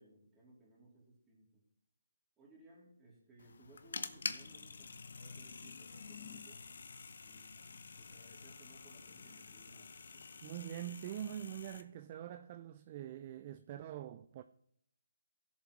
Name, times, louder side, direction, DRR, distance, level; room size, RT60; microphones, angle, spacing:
voice 1, 0.0-1.6 2.4-6.6 7.2-7.6 8.0-10.6, right 1 dB, 10° right, 3.3 m, -62 dB
sound 1, 3.4-11.8, left 4 dB, 65° left, 0.8 m, -48 dB
voice 2, 10.4-14.4, right 11 dB, 30° right, 0.4 m, -44 dB
16.0 x 7.2 x 3.2 m
hypercardioid pair, 155°, 0 cm